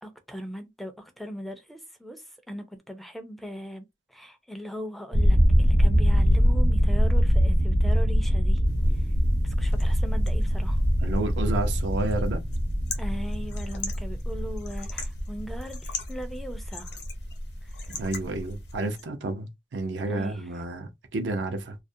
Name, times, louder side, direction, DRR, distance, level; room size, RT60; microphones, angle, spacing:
voice 1, 0.0-8.6 8.9-9.1 9.4-10.8 13.0-16.9 17.6-18.0 20.1-20.5, equal, ahead, 0.4 m, -39 dB
sound 1, 5.1-18.8, equal, 65° right, 1.0 m, -23 dB
sound 2, 8.6-19.0, left 4 dB, 65° left, 0.8 m, -43 dB
voice 2, 11.0-12.4 17.9-21.8, right 2 dB, 85° right, 0.6 m, -30 dB
2.4 x 2.1 x 2.6 m
head